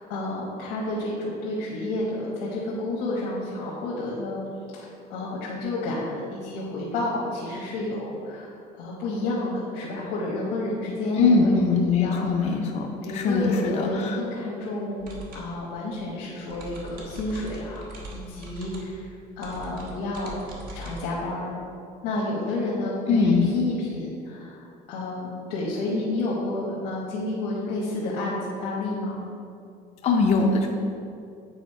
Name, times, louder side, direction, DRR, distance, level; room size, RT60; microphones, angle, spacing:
voice 1, 0.0-4.4 4.8-4.9 5.1-12.6 13.0-15.1 15.3-20.4 20.7-21.5 22.0-29.2, left 2 dB, 90° left, -5 dB, 1.3 m, -30 dB
voice 2, 11.2-12.9 13.1-14.2 23.1-23.5 30.0-30.7, left 4 dB, 40° left, 0 dB, 0.6 m, -21 dB
sound 1, 15.0-21.0, right 2 dB, 60° right, 1.4 m, -41 dB
8.4 x 3.5 x 4.6 m, 2.5 s
cardioid pair, 135°, 17 cm